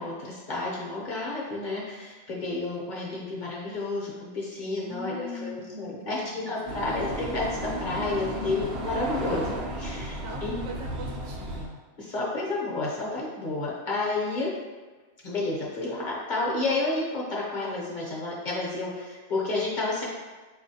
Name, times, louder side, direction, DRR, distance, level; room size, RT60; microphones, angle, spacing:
voice 1, 0.0-7.5 7.8-10.6 12.0-14.5 15.2-20.0, left 2 dB, 50° left, -4 dB, 0.7 m, -31 dB
voice 2, 4.8-6.9 10.2-11.8, left 1 dB, 85° right, -1 dB, 1.0 m, -41 dB
sound 1, 6.7-11.7, right 1 dB, 60° right, 0.8 m, -33 dB
4.3 x 2.5 x 2.7 m, 1.3 s
omnidirectional pair, 1.2 m